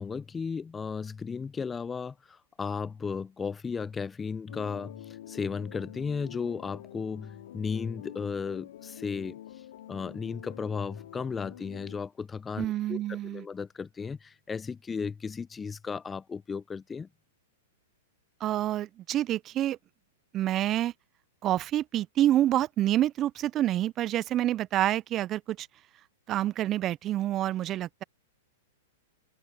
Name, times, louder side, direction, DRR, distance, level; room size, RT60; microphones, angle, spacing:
voice 1, 0.0-9.4 9.9-17.1, left 5 dB, 15° left, 0.6 m, -35 dB
sound 1, 4.5-12.0, left 12 dB, 70° left, 2.8 m, -47 dB
voice 2, 12.6-13.4 18.4-19.8 20.3-20.9 21.4-25.7 26.3-28.0, right 13 dB, 30° right, 0.4 m, -27 dB
open air
hypercardioid pair, 120°, 0 cm